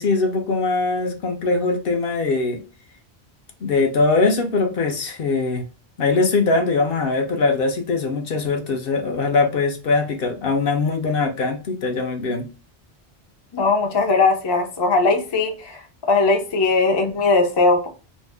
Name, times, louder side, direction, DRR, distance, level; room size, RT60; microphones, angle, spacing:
voice 1, 0.0-2.6 3.6-5.6 6.0-12.5, left 3 dB, 65° left, 0.8 m, -21 dB
voice 2, 13.5-15.8 16.1-17.9, left 3 dB, 35° left, 0.4 m, -19 dB
2.6 x 2.1 x 3.2 m
omnidirectional pair, 1.1 m